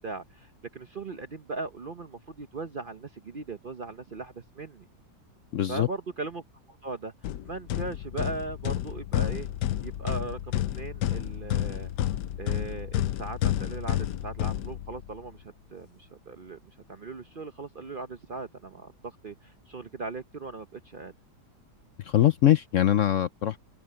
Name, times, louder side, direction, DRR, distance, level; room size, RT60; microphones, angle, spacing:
voice 1, 0.0-4.8 5.7-6.4 6.7-7.1 7.4-9.5 9.8-11.9 12.4-21.1, right 3 dB, 45° right, 0.7 m, -39 dB
voice 2, 5.5-5.9 22.0-23.6, left 12 dB, 65° left, 0.8 m, -22 dB
sound 1, 7.2-15.2, left 12 dB, 85° left, 1.3 m, -30 dB
omnidirectional pair, 1.8 m